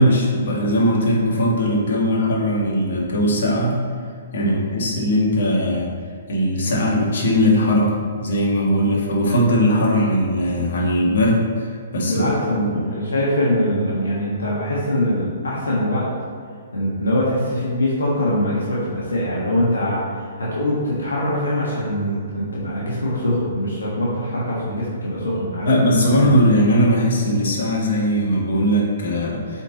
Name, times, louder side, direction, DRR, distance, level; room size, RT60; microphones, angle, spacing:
voice 1, 0.0-3.7 4.3-5.9 6.3-7.9 8.2-12.3 12.5-12.8 25.7-29.6, equal, 65° left, -3 dB, 1.8 m, -19 dB
voice 2, 12.1-16.1 16.7-26.2, left 1 dB, 85° left, -6 dB, 1.5 m, -23 dB
8.1 x 4.4 x 4.0 m, 2.2 s
hypercardioid pair, 130°, 0 cm